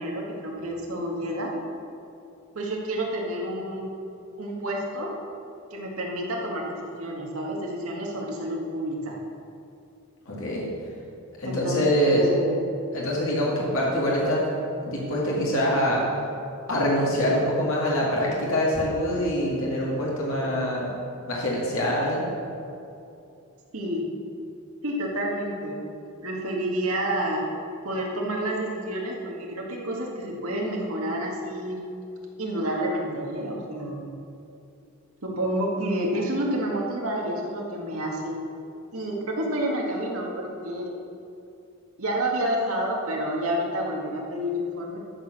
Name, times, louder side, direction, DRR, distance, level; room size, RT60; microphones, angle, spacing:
voice 1, 0.0-1.6 2.5-3.9 4.4-5.1 5.7-9.2 11.4-12.6 23.7-24.1 24.8-25.8 26.2-27.5 27.8-31.8 32.4-34.1 35.2-38.4 38.9-40.9 42.0-45.0, right 1 dB, 85° right, -2 dB, 1.9 m, -29 dB
voice 2, 10.3-10.7 11.4-12.3 12.9-14.5 14.8-16.0 16.7-20.9 21.3-22.3, equal, 75° left, -5 dB, 2.2 m, -24 dB
12.0 x 6.6 x 6.4 m, 2.6 s
head